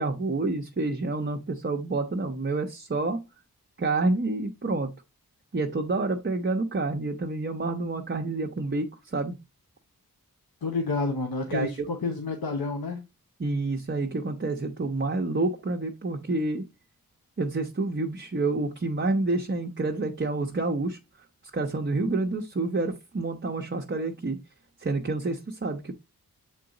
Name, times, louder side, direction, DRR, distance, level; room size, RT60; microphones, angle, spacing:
voice 1, 0.0-3.2 3.8-4.9 5.5-9.3 11.5-11.7 13.4-16.6 17.4-21.0 21.5-24.4 24.8-25.9, right 3 dB, 35° right, 0.8 m, -28 dB
voice 2, 10.6-13.0, left 3 dB, 85° left, 1.1 m, -29 dB
7.5 x 3.9 x 3.8 m
wide cardioid pair, 85°, 36 cm